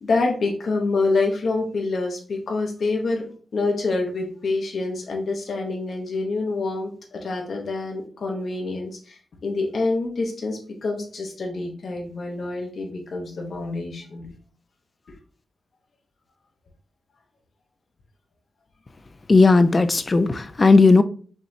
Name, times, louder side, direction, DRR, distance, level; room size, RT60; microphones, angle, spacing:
voice 1, 0.0-3.3 3.5-14.3, left 3 dB, 60° left, 0.8 m, -26 dB
voice 2, 19.3-21.0, left 3 dB, 30° left, 0.3 m, -15 dB
5.3 x 3.1 x 2.6 m
wide cardioid pair, 150°, 0 cm